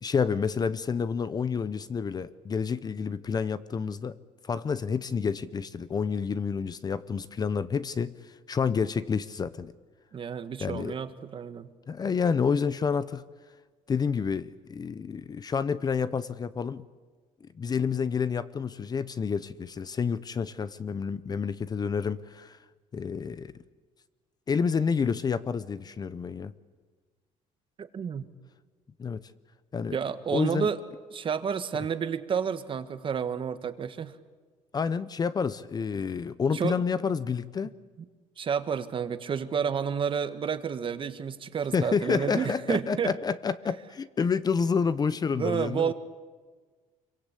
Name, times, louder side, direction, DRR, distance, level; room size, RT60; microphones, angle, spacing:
voice 1, 0.0-4.2 4.4-8.1 8.5-9.7 10.6-10.9 11.9-13.2 13.9-16.8 17.6-22.6 22.9-23.5 24.5-26.5 29.0-29.2 29.7-30.0 30.3-30.7 34.7-37.7 41.7-45.9, left 6 dB, 30° left, 15 dB, 0.7 m, -29 dB
voice 2, 10.1-11.7 27.8-28.2 29.9-30.8 31.1-34.2 36.5-36.8 38.4-43.1 45.3-45.9, right 7 dB, 40° right, 10 dB, 1.5 m, -30 dB
26.0 x 23.5 x 8.3 m, 1.4 s
cardioid pair, 130°, 14 cm